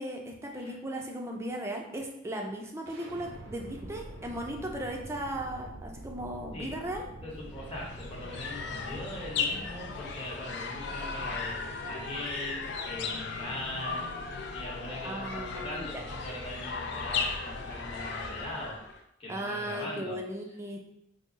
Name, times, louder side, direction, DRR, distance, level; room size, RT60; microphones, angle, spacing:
voice 1, 0.0-7.0 15.0-16.0 19.3-20.8, right 1 dB, 15° right, 1 dB, 0.5 m, -37 dB
sound 1, 2.9-14.7, right 1 dB, 80° right, 0.6 m, -48 dB
voice 2, 7.2-14.1 14.5-18.8 19.2-20.2, left 1 dB, 30° left, -5 dB, 1.1 m, -40 dB
sound 2, 7.4-19.0, left 4 dB, 65° left, 0.4 m, -36 dB
3.7 x 2.0 x 3.9 m, 0.79 s
head